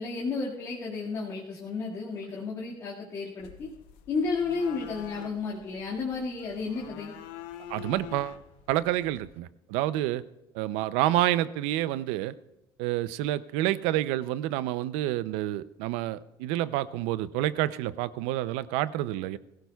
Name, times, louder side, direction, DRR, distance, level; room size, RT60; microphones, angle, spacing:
voice 1, 0.0-3.7 4.1-7.1, left 4 dB, 35° left, -5 dB, 2.0 m, -32 dB
sound 1, 3.4-9.4, left 12 dB, 70° left, 0.8 m, -46 dB
voice 2, 7.7-8.4 8.7-10.2 10.5-12.4 12.8-19.4, right 14 dB, 85° right, 16 dB, 0.5 m, -28 dB
22.0 x 16.0 x 2.3 m, 0.93 s
cardioid pair, 170°, 9 cm